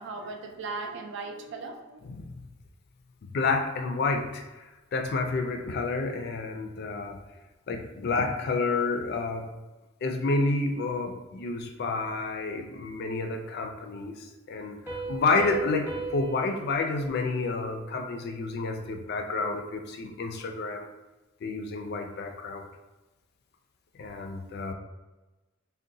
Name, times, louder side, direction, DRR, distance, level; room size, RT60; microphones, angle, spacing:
voice 1, 0.0-2.0, right 3 dB, 60° right, 3 dB, 0.4 m, -37 dB
voice 2, 2.0-2.3 3.3-4.6 4.9-7.2 7.7-9.5 10.0-20.9 21.4-22.6 24.0-24.7, left 3 dB, 55° left, 4 dB, 0.4 m, -29 dB
Piano, 14.9-18.3, right 3 dB, 10° right, 0.6 m, -39 dB
3.7 x 2.1 x 2.6 m, 1.1 s
head